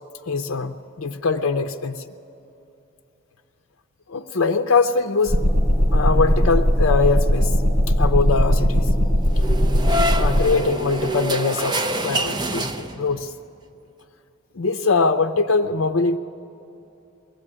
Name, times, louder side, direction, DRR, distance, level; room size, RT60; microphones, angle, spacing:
voice 1, 0.3-2.0 4.1-5.4 5.9-7.6 8.0-8.9 10.1-13.3 14.5-16.2, left 4 dB, 65° left, 5 dB, 0.6 m, -22 dB
sound 1, 5.3-10.4, equal, 65° right, 4.5 m, -18 dB
sound 2, 9.3-13.2, right 1 dB, 20° right, 0.8 m, -26 dB
22.0 x 16.0 x 9.9 m, 2.9 s
head